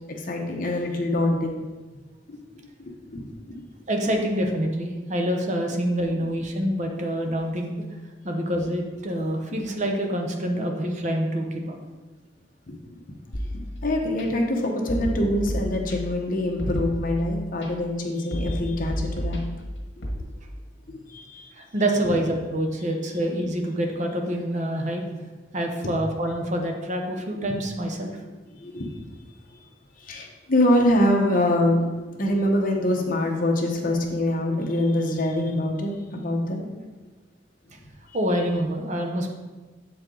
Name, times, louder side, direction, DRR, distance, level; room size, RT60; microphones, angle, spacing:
voice 1, 0.1-1.7 2.3-2.4 2.8-3.3 12.7-13.0 13.5-19.4 21.1-21.5 28.5-29.0 29.5-29.6 30.0-36.7, left 1 dB, 50° left, 1 dB, 1.0 m, -25 dB
voice 2, 3.9-7.8 8.2-11.8 21.5-25.1 25.5-28.2 38.1-39.3, right 1 dB, 40° right, 2 dB, 0.9 m, -26 dB
sound 1, 13.3-14.2 14.9-16.2 16.6-17.7 18.3-20.2, equal, 70° left, 1.4 m, -31 dB
7.5 x 4.6 x 3.8 m, 1.3 s
head